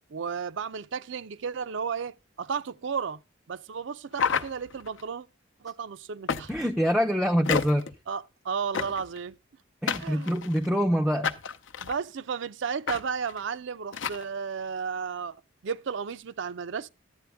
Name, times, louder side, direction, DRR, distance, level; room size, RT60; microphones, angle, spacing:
voice 1, 0.1-3.2 3.5-5.3 5.6-6.5 8.1-9.3 10.0-10.4 11.8-15.4 15.6-16.9, right 6 dB, 65° right, 0.5 m, -33 dB
sound 1, 4.1-5.0 6.3-6.8 7.5-7.9 8.7-9.2 9.9-10.7 11.2-12.0 12.9-13.0 13.3-13.4 13.9-14.2, left 6 dB, 65° left, 0.6 m, -30 dB
voice 2, 6.5-7.9 9.8-11.3, equal, 5° right, 0.4 m, -25 dB
11.5 x 8.5 x 3.4 m
head